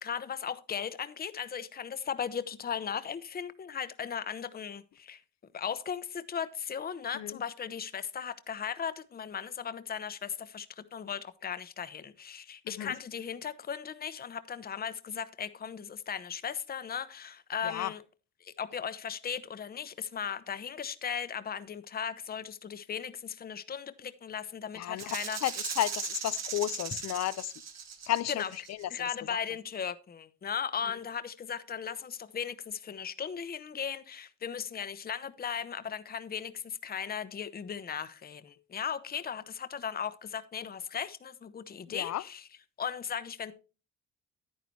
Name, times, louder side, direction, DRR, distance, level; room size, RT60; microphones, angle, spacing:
voice 1, 0.0-5.2 5.5-18.0 18.4-25.4 28.3-28.5 28.9-42.5 42.8-43.5, left 7 dB, 30° left, 0.7 m, -37 dB
voice 2, 24.7-25.2 25.4-27.5 28.1-28.4 28.8-28.9 41.9-42.2, left 13 dB, 60° left, 0.6 m, -32 dB
Rattle (instrument), 25.0-28.8, right 6 dB, 60° right, 1.6 m, -38 dB
10.0 x 9.5 x 3.1 m
cardioid pair, 90°, 30 cm